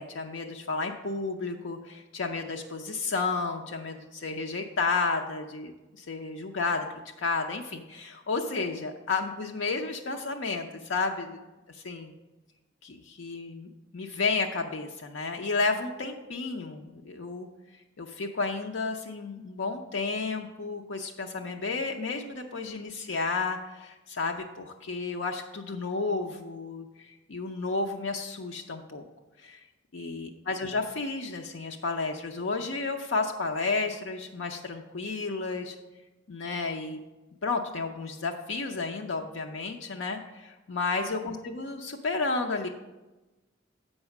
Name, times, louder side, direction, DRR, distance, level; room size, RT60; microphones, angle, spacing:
voice 1, 0.0-11.4 11.7-12.1 12.8-17.5 18.0-29.1 29.4-29.6 29.9-35.8 36.3-37.0 37.4-42.7, left 3 dB, 80° left, 3 dB, 0.6 m, -32 dB
7.9 x 5.4 x 5.9 m, 1.1 s
head